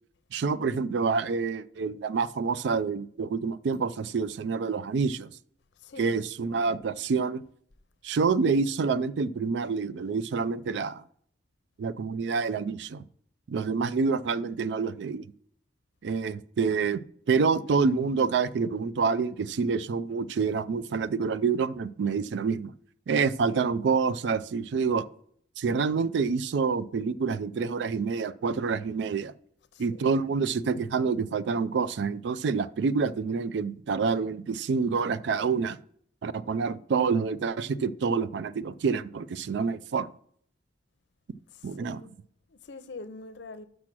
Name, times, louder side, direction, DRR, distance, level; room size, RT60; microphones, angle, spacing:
voice 1, 0.3-5.3 6.0-7.4 8.0-11.0 11.8-13.1 13.5-15.3 16.0-17.0 17.3-22.7 23.1-25.1 25.6-29.3 29.8-35.8 36.2-40.1 41.6-42.0, right 5 dB, 75° right, 0.3 m, -27 dB
voice 2, 5.8-6.3 29.7-30.2 41.5-42.1 42.5-43.7, left 3 dB, 75° left, 0.6 m, -45 dB
6.1 x 6.0 x 6.0 m
head